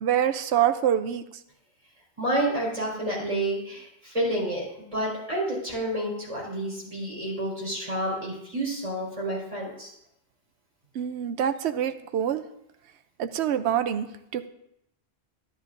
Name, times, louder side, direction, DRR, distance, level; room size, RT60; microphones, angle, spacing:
voice 1, 0.0-1.2 10.9-12.4 13.2-14.5, right 10 dB, 90° right, 10 dB, 0.9 m, -25 dB
voice 2, 2.2-9.9, right 1 dB, 30° right, -6 dB, 4.4 m, -29 dB
11.5 x 11.0 x 2.5 m, 0.80 s
omnidirectional pair, 1.1 m